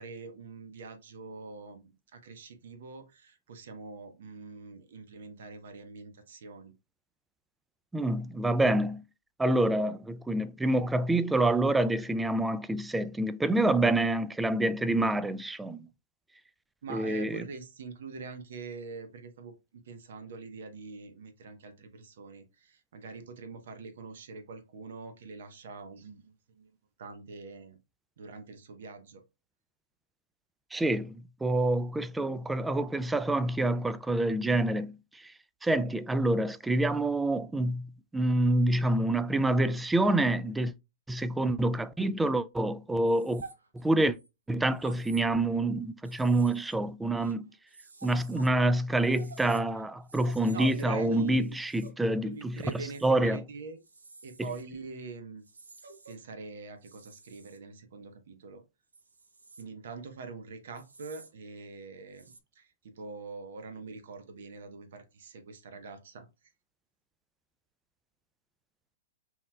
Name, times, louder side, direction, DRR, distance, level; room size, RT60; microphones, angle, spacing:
voice 1, 0.0-6.7 16.8-26.7 27.0-27.8 28.2-29.2 50.4-51.6 52.2-53.8 54.2-55.5 56.1-58.6 59.6-66.3, right 4 dB, 60° right, 0.9 m, -44 dB
voice 2, 7.9-9.0 9.4-15.9 16.9-17.4 30.7-35.3 35.6-40.7 41.1-43.4 43.7-44.2 44.5-47.5 48.0-52.6 53.0-53.4, right 1 dB, 5° right, 0.3 m, -27 dB
sound 1, 43.1-44.3 44.8-45.7 46.0-48.5 48.8-53.1 53.8-54.6 55.4-56.2 56.8-57.6 58.9-59.6 60.8-61.3 62.1-62.4, right 3 dB, 80° right, 0.7 m, -51 dB
5.4 x 3.1 x 2.2 m
figure-of-eight pair, 115°, 0 cm